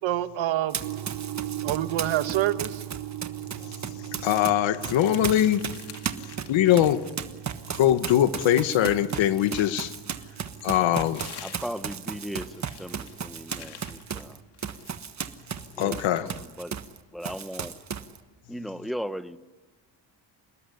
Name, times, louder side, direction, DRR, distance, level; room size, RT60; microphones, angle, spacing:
voice 1, 0.0-0.8 1.6-2.8, right 13 dB, 85° right, 11 dB, 1.5 m, -27 dB
Run, 0.7-4.5 4.8-17.0 17.2-18.2, right 7 dB, 40° right, 1.4 m, -35 dB
sound 1, 0.8-14.5, right 13 dB, 55° right, 1.4 m, -40 dB
voice 2, 3.6-5.6 6.5-7.0 7.7-9.9 10.6-11.3 15.8-16.3, left 11 dB, 85° left, 12 dB, 1.4 m, -22 dB
sound 2, 4.3-7.2 7.5-9.9 10.6-15.0, left 8 dB, 60° left, 2.0 m, -48 dB
voice 3, 11.4-14.4 15.7-16.8 17.1-17.8 18.5-19.4, equal, ahead, 12 dB, 0.9 m, -37 dB
27.5 x 20.0 x 9.9 m, 1.3 s
cardioid pair, 130°, 45 cm